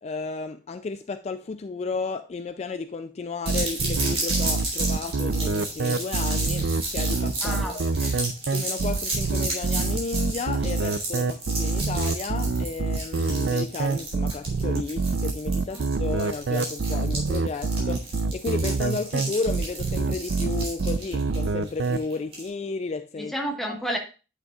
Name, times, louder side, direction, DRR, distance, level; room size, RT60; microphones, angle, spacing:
voice 1, 0.0-7.9 8.5-23.3 23.7-23.8, left 4 dB, 40° left, 0.4 m, -33 dB
sound 1, 3.5-22.5, right 2 dB, 35° right, 3.4 m, -33 dB
sound 2, 3.5-22.0, right 3 dB, 90° right, 0.5 m, -26 dB
voice 2, 7.4-8.2 15.7-15.8 23.2-24.0, equal, ahead, 1.4 m, -31 dB
10.5 x 6.6 x 2.4 m
head